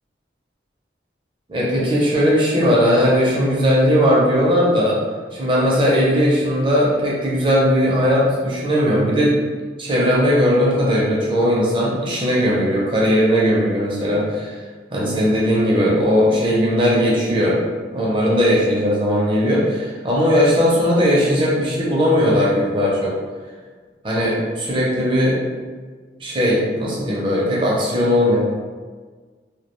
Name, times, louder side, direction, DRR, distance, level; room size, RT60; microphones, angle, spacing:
voice 1, 1.5-5.0 5.3-9.4 9.8-14.6 14.9-17.6 17.9-23.1 24.0-25.4 26.2-28.4, equal, 30° right, -5 dB, 0.5 m, -18 dB
2.2 x 2.1 x 2.9 m, 1.5 s
head